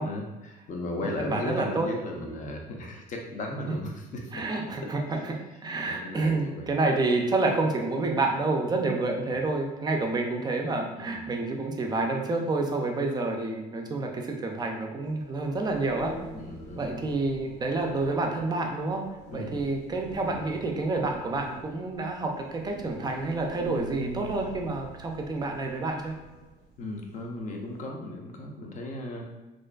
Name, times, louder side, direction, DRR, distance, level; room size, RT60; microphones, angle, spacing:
voice 1, 0.0-4.4 5.8-6.8 9.2-9.3 10.9-11.3 16.3-16.9 19.3-19.6 26.8-29.2, left 2 dB, 50° left, 1 dB, 0.5 m, -36 dB
voice 2, 1.0-2.4 4.3-5.3 5.6-16.1 16.8-19.0 19.3-26.1, right 3 dB, 25° right, 2 dB, 0.4 m, -29 dB
sound 1, 15.0-27.9, right 1 dB, 80° right, 0.5 m, -45 dB
2.5 x 2.3 x 2.2 m, 1.1 s
cardioid pair, 110°, 17 cm